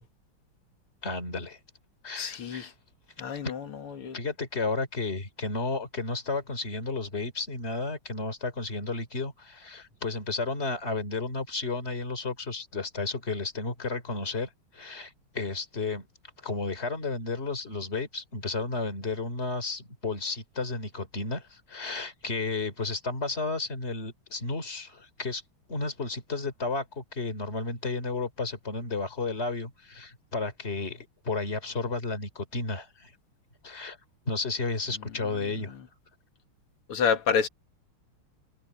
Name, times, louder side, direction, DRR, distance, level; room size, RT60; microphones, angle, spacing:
voice 1, 1.0-1.6 2.0-2.7 3.4-3.5 4.1-16.1 16.4-25.4 25.7-33.1 33.6-34.0 34.3-35.7, left 3 dB, 30° left, 3.4 m, -32 dB
voice 2, 2.2-2.7 3.2-4.2 36.9-37.5, left 6 dB, 80° left, 2.7 m, -28 dB
omnidirectional pair, 2.4 m